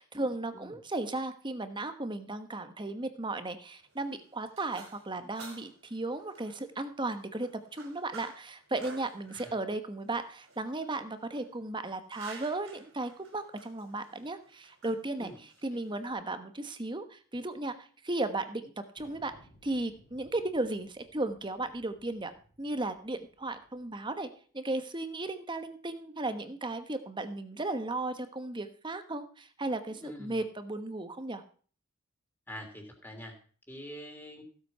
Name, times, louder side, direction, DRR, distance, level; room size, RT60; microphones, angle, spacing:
voice 1, 0.0-19.3 19.6-22.3 22.6-24.3 24.5-31.4, right 2 dB, 20° right, 9 dB, 1.1 m, -35 dB
sound 1, 3.8-16.1, right 4 dB, 60° right, 4.3 m, -52 dB
Thunder, 19.0-24.1, equal, 35° left, 3.7 m, -62 dB
voice 2, 30.0-30.4 32.5-33.4 33.7-34.4, equal, 10° left, 3 dB, 3.2 m, -45 dB
16.0 x 8.0 x 5.6 m, 0.43 s
head